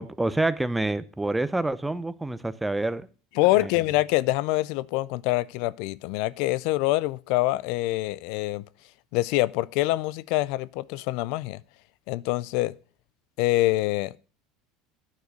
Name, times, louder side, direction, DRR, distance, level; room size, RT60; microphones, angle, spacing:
voice 1, 0.0-3.1 3.6-3.7, right 2 dB, 10° right, 0.6 m, -27 dB
voice 2, 3.4-8.6 9.1-11.6 12.1-12.8 13.4-14.1, left 18 dB, 70° left, 0.4 m, -25 dB
9.5 x 6.5 x 6.5 m
supercardioid pair, 115°, 0 cm